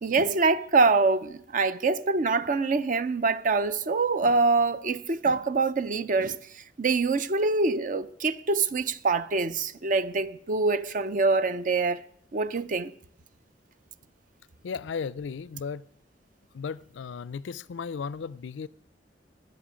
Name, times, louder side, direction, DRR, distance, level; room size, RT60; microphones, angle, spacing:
voice 1, 0.0-12.0 12.3-12.9, right 3 dB, 45° right, 0.6 m, -25 dB
voice 2, 14.6-15.8 16.5-18.7, left 6 dB, 85° left, 0.4 m, -35 dB
19.0 x 7.9 x 5.1 m
head